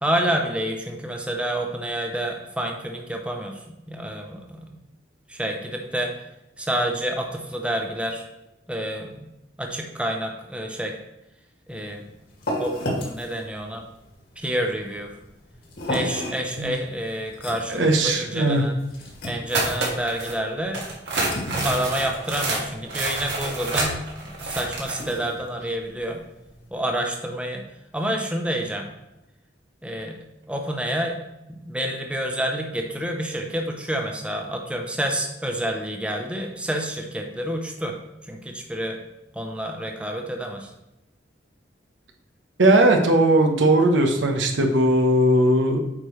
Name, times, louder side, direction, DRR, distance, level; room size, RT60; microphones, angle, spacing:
voice 1, 0.0-4.8 5.3-6.1 6.6-8.3 8.7-9.3 9.6-11.0 11.7-12.0 12.6-13.8 14.4-15.2 15.9-18.8 19.2-20.8 21.6-26.2 26.7-27.6 27.9-28.9 29.8-31.2 31.5-38.0 38.2-39.0 39.3-40.7, right 1 dB, 5° right, 2 dB, 0.8 m, -28 dB
sound 1, 11.7-26.7, left 1 dB, 60° left, 2.1 m, -35 dB
voice 2, 17.7-18.6 42.6-45.8, right 1 dB, 80° right, 3 dB, 1.1 m, -18 dB
sound 2, 19.5-20.3 20.7-25.0, right 2 dB, 65° right, 1.8 m, -28 dB
8.5 x 5.2 x 3.2 m, 0.92 s
head